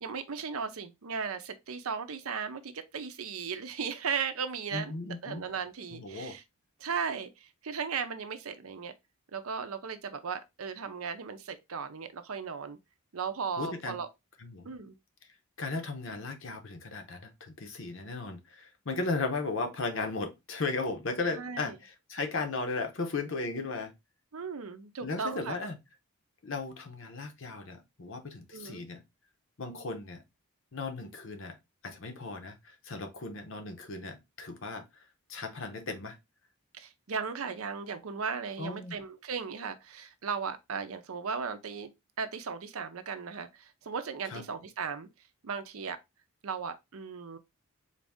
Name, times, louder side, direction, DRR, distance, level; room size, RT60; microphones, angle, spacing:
voice 1, 0.0-4.9 5.2-6.4 6.8-8.9 9.3-12.8 13.1-14.1 14.6-15.0 21.3-21.8 24.3-25.6 28.5-28.9 36.7-41.9 42.2-45.1 45.4-46.0 46.4-47.4, right 6 dB, 75° right, 0.6 m, -36 dB
voice 2, 4.7-5.4 5.9-6.3 13.6-14.0 14.4-14.7 15.6-23.9 25.0-25.8 26.4-29.0 29.6-30.2 30.7-31.6 31.8-34.8 35.3-36.2 38.6-39.0 44.3-44.4, left 3 dB, 60° left, 0.7 m, -36 dB
4.0 x 2.6 x 3.5 m
head